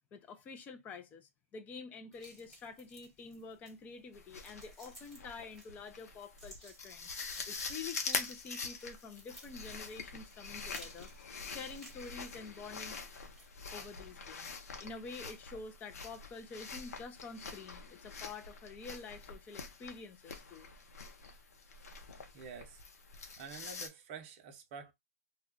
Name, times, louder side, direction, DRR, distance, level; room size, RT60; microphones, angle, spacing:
voice 1, 0.1-7.1 7.5-11.1 11.5-12.9 13.7-20.7, left 4 dB, 20° left, 0.5 m, -48 dB
sound 1, 2.1-13.9, right 1 dB, ahead, 1.2 m, -58 dB
sound 2, 4.1-23.9, left 4 dB, 75° left, 0.7 m, -45 dB
voice 2, 22.3-22.8 23.4-24.9, right 6 dB, 40° right, 0.7 m, -48 dB
2.3 x 2.2 x 3.6 m
hypercardioid pair, 140°, 8 cm